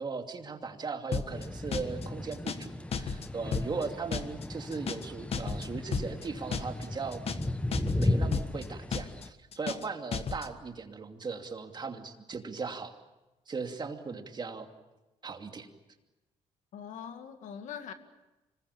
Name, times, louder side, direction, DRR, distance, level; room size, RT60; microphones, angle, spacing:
voice 1, 0.0-7.2 8.0-12.9 13.5-14.7 15.2-15.7, right 4 dB, 35° right, 5 dB, 2.7 m, -38 dB
sound 1, 1.1-1.5 1.7-2.1 2.3-2.7 2.9-3.3 3.5-3.9 4.1-4.5 4.7-5.1 5.3-5.7 5.9-6.3 6.5-6.9 7.1-7.5 7.7-8.1 8.3-8.7 8.9-9.3 9.5-9.9 10.1-10.5, left 6 dB, 50° left, 1.6 m, -33 dB
sound 2, 1.3-9.3, left 1 dB, 10° left, 1.0 m, -35 dB
voice 2, 16.7-17.9, left 8 dB, 75° left, 7 dB, 2.2 m, -42 dB
25.5 x 21.0 x 8.6 m, 1.1 s
cardioid pair, 90°, 13 cm